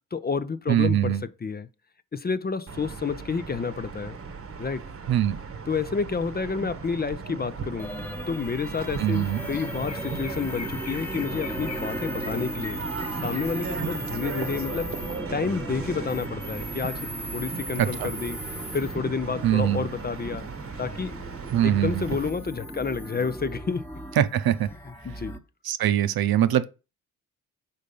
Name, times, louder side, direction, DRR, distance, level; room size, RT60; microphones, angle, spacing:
voice 1, 0.1-1.7 2.1-4.2 4.6-4.9 5.7-7.9 8.3-12.8 13.2-15.0 15.3-18.4 18.7-20.5 20.8-21.3 21.6-23.8 24.9-25.4, left 5 dB, 25° left, 0.5 m, -30 dB
voice 2, 0.7-1.2 5.1-5.4 9.0-9.5 17.8-18.1 19.4-19.9 21.5-22.1 24.2-24.7 25.6-26.7, right 11 dB, 70° right, 0.7 m, -23 dB
sound 1, 2.7-22.3, right 5 dB, 35° right, 1.0 m, -37 dB
sound 2, 7.8-25.4, equal, 5° left, 1.1 m, -37 dB
Chirp tweet, 9.1-9.2 9.5-14.1, left 5 dB, 45° left, 1.1 m, -43 dB
5.1 x 4.1 x 5.3 m
supercardioid pair, 55°, 37 cm